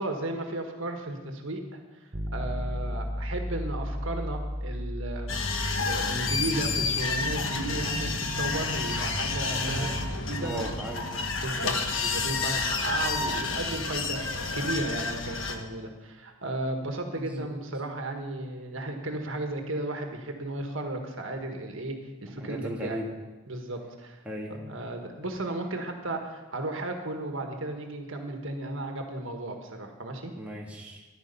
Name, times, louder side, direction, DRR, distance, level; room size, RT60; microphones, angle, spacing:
voice 1, 0.0-1.8 2.3-5.3 5.8-10.7 11.4-22.0 22.2-23.0 23.5-24.2 24.6-30.3, right 2 dB, 65° right, 4 dB, 1.6 m, -34 dB
sound 1, 2.1-12.0, equal, 35° right, 1.0 m, -37 dB
sound 2, 5.3-15.6, left 4 dB, 65° left, 1.3 m, -30 dB
voice 2, 9.5-9.9 10.4-11.0 17.1-17.5 22.4-23.1 24.2-24.5 30.3-31.0, right 1 dB, 5° right, -2 dB, 1.5 m, -36 dB
14.0 x 11.0 x 5.5 m, 1.2 s
head